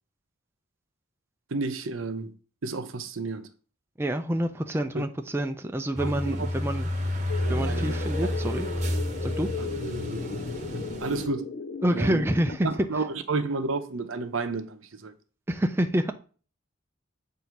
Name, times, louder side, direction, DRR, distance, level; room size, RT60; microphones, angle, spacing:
voice 1, 1.5-2.3 2.6-3.5 4.9-5.0 6.0-6.5 7.5-7.9 8.2-8.5 9.6-9.7 10.1-10.2 10.7-11.6 11.9-12.2 12.6-15.1, right 3 dB, 75° right, 0.8 m, -31 dB
voice 2, 4.0-6.9 7.5-8.7 9.2-9.5 11.8-12.7 15.5-16.1, right 1 dB, 10° right, 0.4 m, -27 dB
sound 1, 5.9-11.3, left 1 dB, 35° right, 0.9 m, -30 dB
sound 2, 7.3-12.6, left 4 dB, 45° left, 0.5 m, -36 dB
8.0 x 2.7 x 5.8 m
head